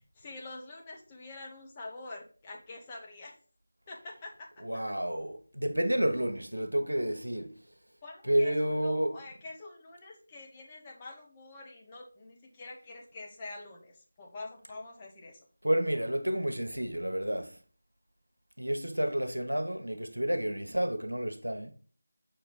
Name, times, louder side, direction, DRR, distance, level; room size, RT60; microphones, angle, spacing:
voice 1, 0.2-3.3 3.9-4.5 8.0-15.5, left 2 dB, 20° left, 1.0 m, -46 dB
voice 2, 4.6-7.5 8.3-9.1 15.6-17.5 18.6-21.7, right 1 dB, 80° right, 1.1 m, -30 dB
6.4 x 4.5 x 4.0 m
figure-of-eight pair, 165°, 0 cm